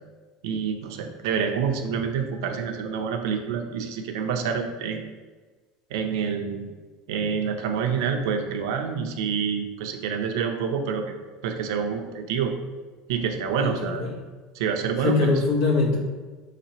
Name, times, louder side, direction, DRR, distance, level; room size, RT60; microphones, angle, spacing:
voice 1, 0.4-5.1 5.9-6.7 7.1-11.1 11.4-12.6 13.1-14.0 14.5-15.3, right 6 dB, 85° right, 5 dB, 0.6 m, -27 dB
voice 2, 13.6-14.1 15.0-16.0, left 3 dB, 80° left, -1 dB, 1.1 m, -23 dB
5.8 x 2.9 x 2.9 m, 1.3 s
cardioid pair, 165°, 2 cm